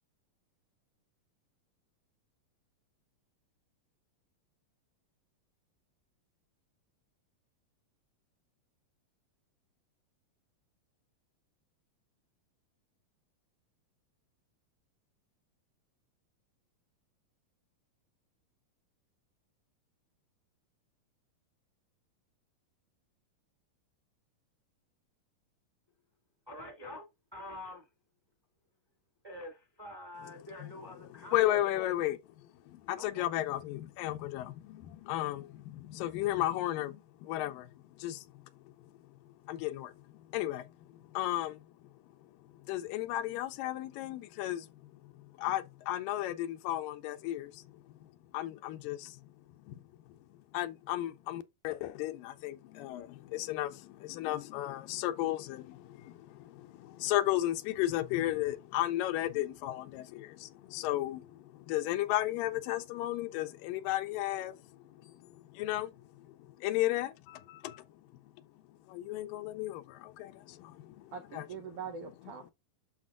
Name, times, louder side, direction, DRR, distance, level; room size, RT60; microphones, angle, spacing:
voice 1, 26.5-27.1 27.3-27.9 29.2-31.4 33.0-33.3, left 1 dB, 15° right, 1.0 m, -46 dB
voice 2, 31.2-32.2 32.7-38.5 39.2-41.9 42.5-49.3 49.7-68.3 68.7-71.5, left 14 dB, 85° left, 2.3 m, -35 dB
voice 3, 71.1-72.5, right 6 dB, 85° right, 1.3 m, -43 dB
11.5 x 4.2 x 2.4 m
omnidirectional pair, 3.9 m